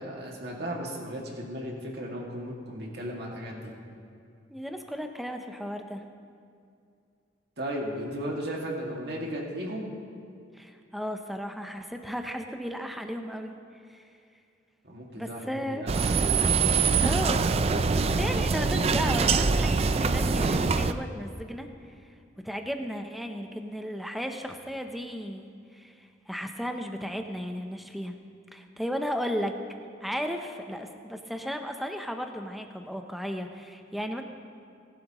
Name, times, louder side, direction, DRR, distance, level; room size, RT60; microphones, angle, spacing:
voice 1, 0.0-3.7 7.6-9.9 14.8-16.9, equal, 60° right, -2 dB, 2.2 m, -36 dB
voice 2, 4.5-6.0 10.5-13.5 13.9-14.0 15.2-15.8 17.0-17.4 17.9-21.7 22.4-28.1 28.5-29.5 30.0-34.2, equal, ahead, 5 dB, 0.7 m, -35 dB
sound 1, 15.9-20.9, right 4 dB, 35° right, 0.4 m, -24 dB
19.5 x 11.5 x 3.0 m, 2.4 s
head